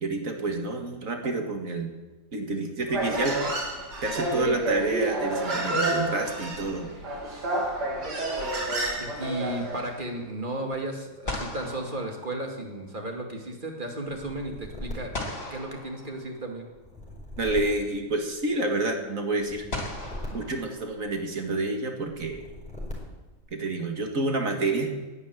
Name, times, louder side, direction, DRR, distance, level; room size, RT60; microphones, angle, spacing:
voice 1, 0.0-1.9 2.3-3.6 4.0-6.9 17.4-19.7 20.3-22.4 23.5-24.9, right 2 dB, 45° right, 4 dB, 2.2 m, -29 dB
Human voice, 2.9-10.0, right 2 dB, 65° right, 3.1 m, -29 dB
voice 2, 9.0-15.1 15.5-16.7, right 1 dB, 25° right, 2 dB, 2.3 m, -34 dB
sound 1, 11.2-13.0 15.1-16.7 18.1-18.2 19.7-21.3, left 2 dB, 35° left, 3.0 m, -38 dB
sound 2, 14.1-16.1 16.7-18.7 19.4-21.3 22.1-23.4, left 1 dB, 5° left, 4.4 m, -41 dB
11.0 x 10.5 x 9.3 m, 1.2 s
omnidirectional pair, 2.0 m